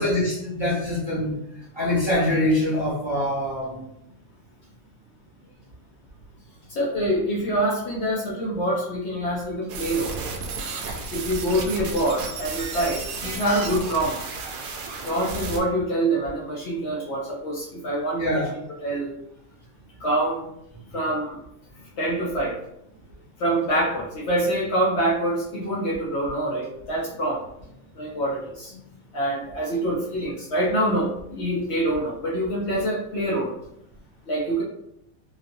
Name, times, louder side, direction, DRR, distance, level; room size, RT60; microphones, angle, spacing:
voice 1, 0.0-1.4 1.7-3.8 18.2-18.5, left 1 dB, 25° right, -8 dB, 0.8 m, -24 dB
voice 2, 6.7-10.2 11.1-14.2 15.1-19.1 20.0-20.5 20.9-21.4 22.0-22.6 23.4-27.4 27.9-28.7 29.1-33.5 34.3-34.6, right 1 dB, 60° left, -4 dB, 0.8 m, -25 dB
sound 1, 9.7-15.6, right 3 dB, 90° right, 1.0 m, -33 dB
3.0 x 2.6 x 2.6 m, 0.78 s
omnidirectional pair, 1.4 m